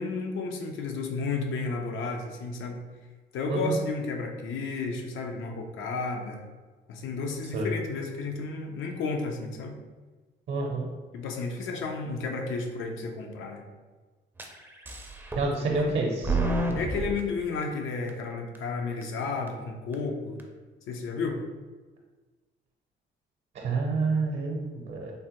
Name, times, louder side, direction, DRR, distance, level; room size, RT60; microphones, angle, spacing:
voice 1, 0.0-2.8 3.3-6.4 6.9-9.7 11.1-13.6 15.6-15.7 16.7-20.4 20.9-21.4, left 4 dB, 80° left, 3 dB, 0.5 m, -32 dB
voice 2, 3.5-3.8 7.5-7.7 10.5-10.9 15.4-16.4 23.5-25.1, right 3 dB, 60° right, 0 dB, 0.6 m, -28 dB
sound 1, 14.4-14.5 14.9-15.5 15.8-17.2 17.6-17.7 18.1-18.2 18.6-18.7 19.0-19.1 19.5-19.6 19.9-20.0 20.4-20.5, right 2 dB, 10° right, 0.4 m, -29 dB
3.3 x 2.1 x 2.9 m, 1.3 s
cardioid pair, 90°, 20 cm